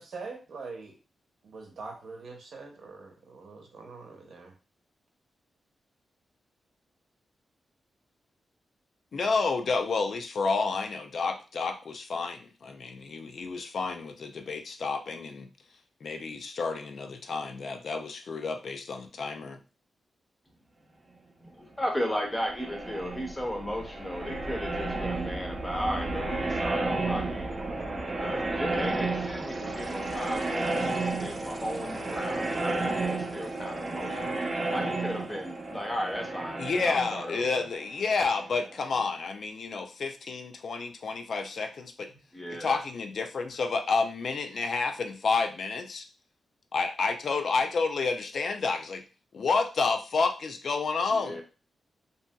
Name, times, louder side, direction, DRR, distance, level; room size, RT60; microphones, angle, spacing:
voice 1, 0.0-0.9 1.5-4.5, right 4 dB, 75° right, 1 dB, 0.8 m, -43 dB
voice 2, 9.1-15.5 16.0-19.6 36.6-42.1 42.5-46.0 46.7-49.0 49.3-51.4, left 4 dB, 55° left, 6 dB, 0.4 m, -30 dB
voice 3, 21.4-27.9 28.2-34.4 34.7-37.6 42.3-42.8 51.1-51.4, equal, 10° left, 1 dB, 0.6 m, -35 dB
sound 1, 22.2-38.8, right 2 dB, 35° right, 0.4 m, -32 dB
2.8 x 2.7 x 2.2 m, 0.33 s
wide cardioid pair, 145°, 0 cm